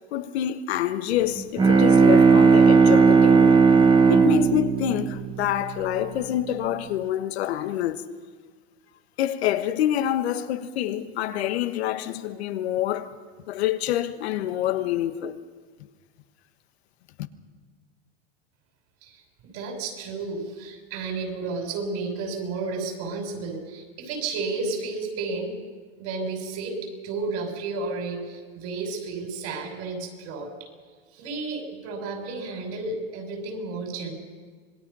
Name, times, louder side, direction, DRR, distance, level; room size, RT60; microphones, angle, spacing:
voice 1, 0.1-3.6 4.1-8.0 9.2-13.1 13.5-15.4, left 12 dB, 80° left, 1.4 m, -26 dB
Bowed string instrument, 1.4-6.1, right 5 dB, 15° right, 1.4 m, -17 dB
voice 2, 19.5-25.6 26.0-30.5 31.1-34.1, right 3 dB, 55° right, 6.2 m, -32 dB
26.0 x 20.5 x 5.6 m
supercardioid pair, 120°, 31 cm